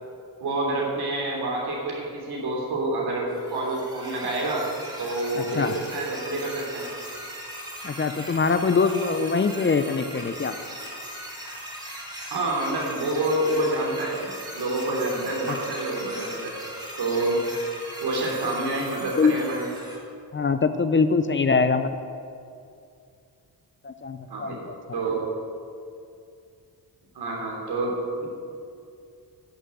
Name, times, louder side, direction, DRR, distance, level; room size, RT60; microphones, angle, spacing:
voice 1, 0.4-4.7 5.0-6.8 12.3-16.5 17.0-17.4 18.0-19.7 24.3-24.7 24.9-25.3 27.1-27.9 28.2-28.3, right 2 dB, 75° right, -2 dB, 3.3 m, -27 dB
sound 1, 3.3-20.0, equal, 10° right, 3.1 m, -39 dB
voice 2, 5.4-5.7 7.8-10.5 15.5-15.6 19.2-19.4 20.3-21.9 23.8-24.6 24.9-25.0, left 4 dB, 30° left, 10 dB, 0.6 m, -23 dB
11.0 x 6.6 x 7.8 m, 2.4 s
cardioid pair, 80°, 39 cm